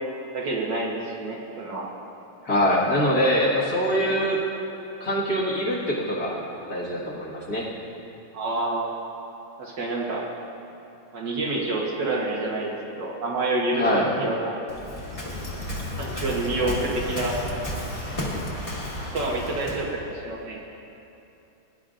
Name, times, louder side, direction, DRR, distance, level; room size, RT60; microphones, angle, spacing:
voice 1, 0.3-1.9 3.9-4.2 8.3-8.9 9.6-10.2 11.1-14.6 16.0-17.3 18.5-20.6, right 2 dB, 60° right, -3 dB, 1.7 m, -28 dB
voice 2, 2.4-4.4 5.0-6.4 6.7-7.7 13.7-14.1, equal, 50° left, -6 dB, 2.1 m, -23 dB
Waves surf, 14.7-19.9, left 1 dB, 20° left, 1.4 m, -32 dB
19.0 x 10.5 x 2.5 m, 2.8 s
omnidirectional pair, 2.3 m